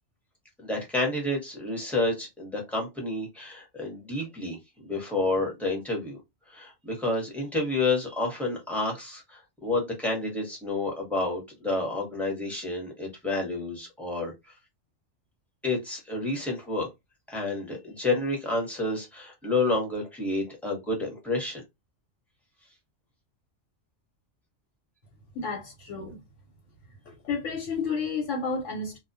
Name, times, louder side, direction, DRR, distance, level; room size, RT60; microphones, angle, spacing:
voice 1, 0.6-6.2 6.5-14.3 15.6-16.9 17.3-21.6, left 2 dB, ahead, 0.8 m, -29 dB
voice 2, 25.3-26.2 27.1-29.0, left 4 dB, 85° left, 1.1 m, -31 dB
2.3 x 2.1 x 2.6 m
omnidirectional pair, 1.3 m